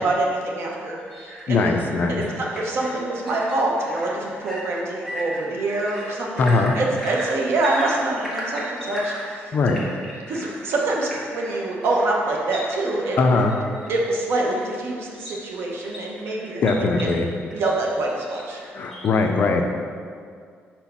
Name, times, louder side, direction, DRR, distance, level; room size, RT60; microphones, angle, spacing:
voice 1, 0.0-1.7 2.1-6.5 6.7-9.5 10.3-13.4 13.9-17.1 17.5-18.6, right 2 dB, 60° right, -1 dB, 1.1 m, -25 dB
sound 1, 1.0-19.1, equal, 5° right, 1.4 m, -37 dB
voice 2, 1.5-2.2 6.4-6.7 9.5-9.8 13.2-13.5 16.6-17.3 18.7-19.8, left 3 dB, 45° left, 3 dB, 0.6 m, -20 dB
5.1 x 4.5 x 5.6 m, 2.2 s
cardioid pair, 140°, 5 cm